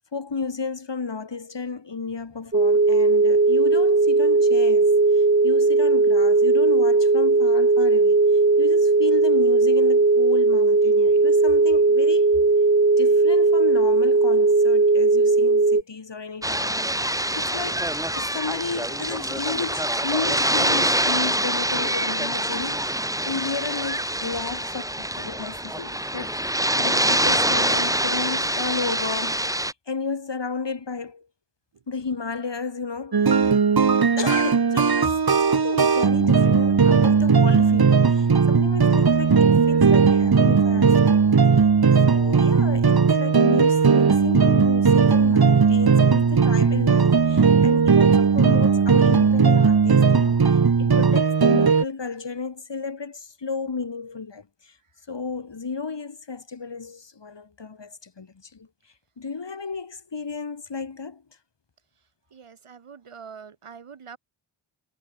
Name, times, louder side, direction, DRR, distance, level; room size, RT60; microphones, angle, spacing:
voice 1, 0.1-8.2 8.6-12.3 13.0-17.9 18.1-26.3 26.8-31.3 31.9-33.5 34.2-41.2 42.1-54.8 55.1-58.7 59.2-61.2, left 4 dB, 55° left, 4.7 m, -33 dB
sound 1, 2.5-15.8, right 3 dB, 25° right, 1.6 m, -18 dB
sound 2, 16.4-29.7, right 1 dB, 5° right, 2.3 m, -25 dB
sound 3, 33.1-51.8, right 5 dB, 45° right, 1.7 m, -17 dB
voice 2, 62.3-64.2, right 6 dB, 85° right, 5.3 m, -44 dB
cardioid pair, 55°, 50 cm